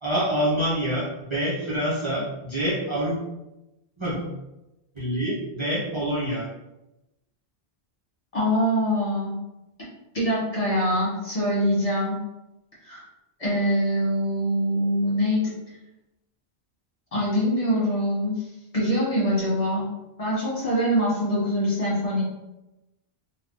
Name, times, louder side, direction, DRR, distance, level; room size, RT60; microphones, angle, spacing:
voice 1, 0.0-3.2 4.0-4.3 5.0-6.4, equal, 30° right, -10 dB, 0.9 m, -26 dB
voice 2, 8.3-9.4 10.1-12.2 12.8-13.0 13.4-15.5 17.1-18.5 18.7-19.9 20.2-22.2, equal, 35° left, -8 dB, 1.2 m, -24 dB
2.7 x 2.4 x 3.7 m, 0.95 s
omnidirectional pair, 1.1 m